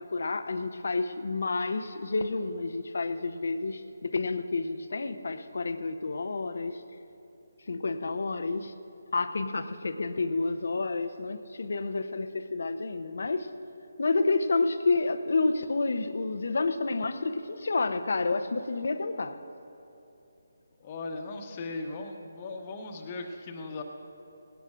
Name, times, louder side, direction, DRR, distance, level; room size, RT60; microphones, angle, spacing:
voice 1, 0.0-6.8 7.7-8.7 9.1-13.5 14.0-19.4, left 3 dB, 60° left, 10 dB, 0.7 m, -29 dB
voice 2, 20.8-23.8, left 3 dB, 30° left, 4 dB, 1.2 m, -38 dB
19.0 x 17.0 x 2.5 m, 2.8 s
figure-of-eight pair, 150°, 0 cm